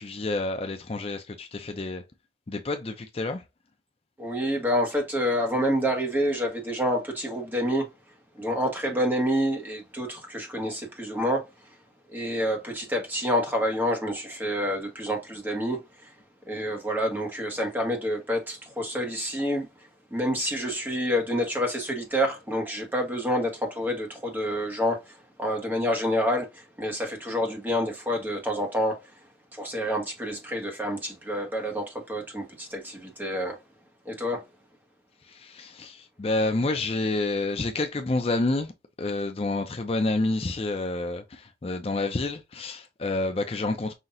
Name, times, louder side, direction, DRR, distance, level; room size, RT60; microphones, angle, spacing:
voice 1, 0.0-2.0 2.5-3.4 35.2-38.7 39.0-43.9, left 2 dB, 35° left, 0.5 m, -29 dB
voice 2, 4.2-7.9 8.4-11.5 12.1-16.1 16.5-19.7 20.1-29.0 29.5-33.6 34.0-34.4, equal, 10° right, 1.3 m, -28 dB
5.6 x 2.8 x 2.5 m
head